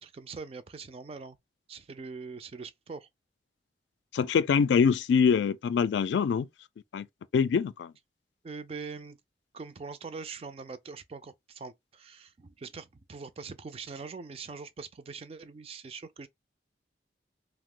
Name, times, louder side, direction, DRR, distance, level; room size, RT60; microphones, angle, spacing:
voice 1, 0.0-1.4 1.7-3.1 8.4-9.2 9.5-16.3, right 4 dB, 35° right, 0.3 m, -42 dB
voice 2, 4.1-6.5 6.9-7.1 7.3-7.9, left 6 dB, 85° left, 0.3 m, -24 dB
2.8 x 2.0 x 3.7 m
head